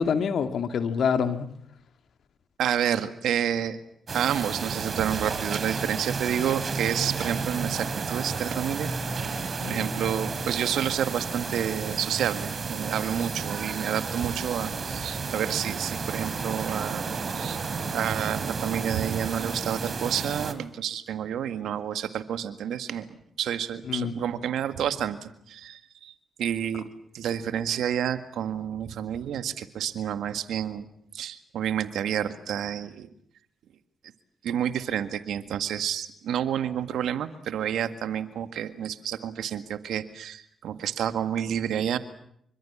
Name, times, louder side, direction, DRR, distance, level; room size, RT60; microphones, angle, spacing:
voice 1, 0.0-1.5 9.6-10.1 23.9-24.1, left 6 dB, 70° left, 8 dB, 2.2 m, -26 dB
voice 2, 2.6-3.8 4.1-8.9 9.2-9.3 9.7-17.0 17.3-17.6 17.9-26.1 26.4-26.9 27.1-30.9 31.1-33.1 34.4-42.0, right 9 dB, 75° right, 10 dB, 1.8 m, -29 dB
sound 1, 4.1-20.5, right 4 dB, 50° right, 3.6 m, -32 dB
27.0 x 25.0 x 7.3 m, 0.71 s
supercardioid pair, 45°, 0 cm